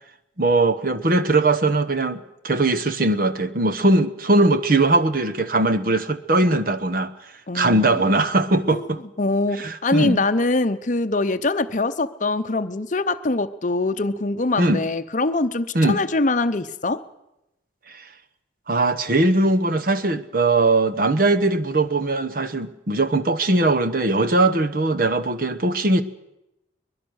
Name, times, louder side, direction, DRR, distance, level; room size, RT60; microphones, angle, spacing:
voice 1, 0.4-7.1 7.5-9.0 9.5-10.2 14.6-14.8 15.7-16.0 17.9-18.0 18.7-26.0, right 2 dB, 45° right, 1.1 m, -20 dB
voice 2, 7.5-8.1 8.7-8.8 9.2-17.0, left 2 dB, 40° left, 0.7 m, -23 dB
23.0 x 21.0 x 6.4 m
head